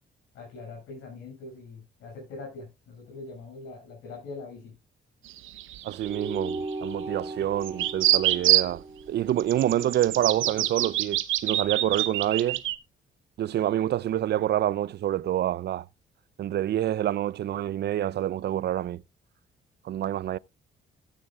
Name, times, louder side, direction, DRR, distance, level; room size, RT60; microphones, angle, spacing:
voice 1, 0.3-4.7, left 3 dB, 85° left, 6.5 m, -42 dB
sound 1, 5.3-6.9 7.6-8.7 9.4-12.8, right 14 dB, 80° right, 0.7 m, -26 dB
voice 2, 5.8-12.6 13.4-15.9 16.4-19.0 19.8-20.4, right 12 dB, 55° right, 0.4 m, -27 dB
sound 2, 6.0-10.8, right 2 dB, 20° right, 4.0 m, -38 dB
15.5 x 8.9 x 2.3 m
cardioid pair, 90°, 20 cm